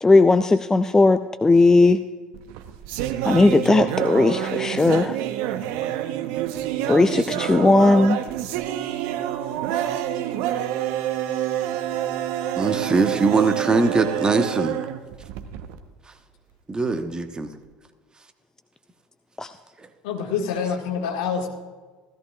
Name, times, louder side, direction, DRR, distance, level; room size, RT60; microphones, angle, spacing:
voice 1, 0.0-2.0 3.3-5.2 6.9-8.2 19.4-19.5, left 3 dB, 15° left, 11 dB, 0.4 m, -17 dB
sound 1, 2.3-15.8, right 11 dB, 60° right, 0.9 m, -27 dB
voice 2, 7.0-7.4 12.6-14.8 16.7-17.5, right 3 dB, 20° right, 7 dB, 1.1 m, -22 dB
voice 3, 20.0-21.5, left 6 dB, 65° left, 2 dB, 1.8 m, -26 dB
16.5 x 14.0 x 2.4 m, 1.4 s
hypercardioid pair, 70°, 4 cm